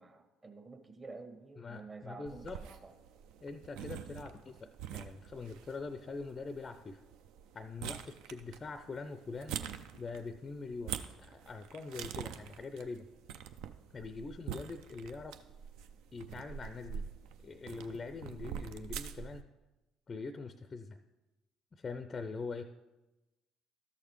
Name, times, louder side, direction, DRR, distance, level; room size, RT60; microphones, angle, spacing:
voice 1, 0.0-2.9, right 3 dB, 30° right, 6 dB, 1.2 m, -50 dB
voice 2, 1.6-2.6 3.4-7.0 7.5-9.6 9.9-13.1 13.9-15.4 16.1-17.1 17.4-19.5 20.1-21.0 21.7-22.7, left 4 dB, 30° left, 10 dB, 0.4 m, -43 dB
sound 1, 2.3-19.4, right 9 dB, 65° right, 0.4 m, -46 dB
13.0 x 6.5 x 3.1 m, 1.1 s
figure-of-eight pair, 50°, 0 cm